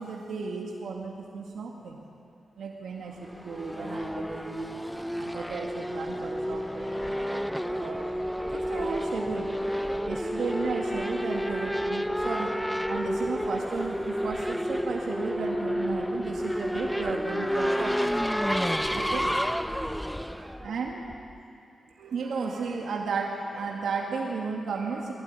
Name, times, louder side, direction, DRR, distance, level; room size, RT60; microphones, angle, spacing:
voice 1, 0.0-2.1 2.6-4.8 5.2-9.5 9.9-18.1 18.9-21.1 22.0-25.1, right 4 dB, 85° right, 0 dB, 2.2 m, -34 dB
Race car auto racing / Accelerating revving vroom, 3.2-21.4, equal, ahead, 0.6 m, -30 dB
21.0 x 16.0 x 9.8 m, 2.5 s
cardioid pair, 85°, 0 cm